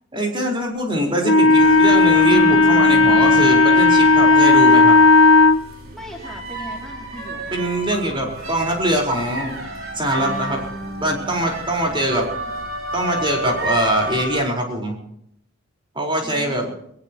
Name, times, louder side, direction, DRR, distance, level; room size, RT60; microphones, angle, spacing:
voice 1, 0.1-5.0 7.5-9.6 9.9-10.7 11.0-12.2 12.9-15.0 15.9-16.7, right 1 dB, 25° right, 0 dB, 4.6 m, -22 dB
Wind instrument woodwind instrument, 1.2-5.6, left 3 dB, 85° left, 0.8 m, -13 dB
sound 1, 1.5-14.4, right 1 dB, 80° right, 5.2 m, -31 dB
voice 2, 5.9-7.5 11.9-12.5 16.2-16.8, equal, ahead, -3 dB, 2.8 m, -39 dB
22.0 x 19.5 x 3.0 m, 0.72 s
head